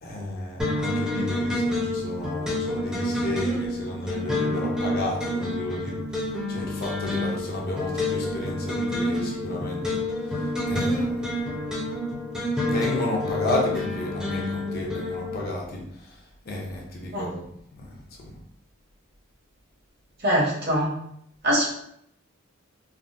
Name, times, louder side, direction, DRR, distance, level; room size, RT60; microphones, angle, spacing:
voice 1, 0.0-6.0 6.5-10.0 10.3-11.6 12.6-16.2 16.4-17.4 17.7-17.9 18.2-18.4, left 1 dB, 45° left, -1 dB, 0.6 m, -32 dB
sound 1, 0.6-15.4, left 1 dB, 5° right, 0.5 m, -28 dB
voice 2, 20.2-20.9 21.4-21.7, equal, 50° right, -3 dB, 0.9 m, -22 dB
3.5 x 2.0 x 2.5 m, 0.71 s
head